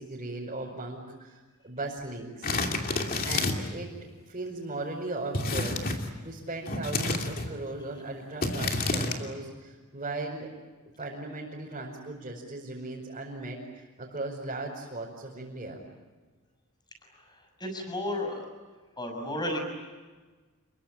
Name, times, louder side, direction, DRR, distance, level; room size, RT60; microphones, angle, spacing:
voice 1, 0.0-1.4 1.6-2.6 3.2-3.9 4.3-5.8 6.2-10.5 11.0-15.8, right 2 dB, 30° right, -4 dB, 5.2 m, -37 dB
sound 1, 2.4-3.8 5.3-6.1 6.7-7.5 8.4-9.2, left 2 dB, 40° left, 2.7 m, -29 dB
voice 2, 17.6-18.5 19.0-19.6, left 1 dB, 20° left, 4 dB, 6.3 m, -32 dB
28.5 x 23.0 x 8.9 m, 1.3 s
head